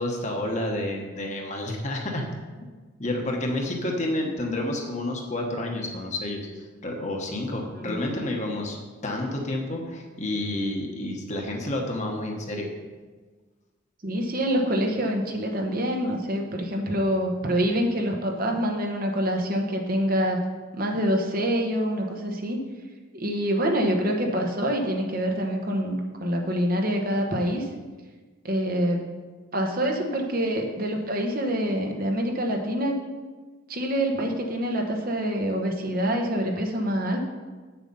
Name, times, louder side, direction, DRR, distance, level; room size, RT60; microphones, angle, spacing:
voice 1, 0.0-2.3 3.0-8.8 9.0-12.7, left 1 dB, 35° left, 1 dB, 1.2 m, -29 dB
voice 2, 14.0-20.4 20.7-22.6 23.1-27.7 28.4-29.0 29.5-33.0 33.7-37.2, equal, 45° right, 2 dB, 1.1 m, -26 dB
8.3 x 6.9 x 5.4 m, 1.4 s
head